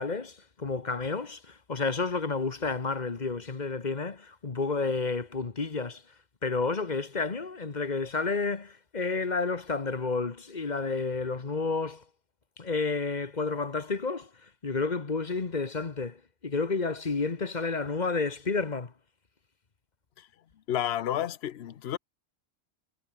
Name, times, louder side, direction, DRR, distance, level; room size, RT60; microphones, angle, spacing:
voice 1, 0.0-6.0 6.4-12.0 12.6-18.9, left 4 dB, 45° left, 1.5 m, -31 dB
voice 2, 20.7-22.0, left 11 dB, 75° left, 1.0 m, -31 dB
omnidirectional pair, 1.1 m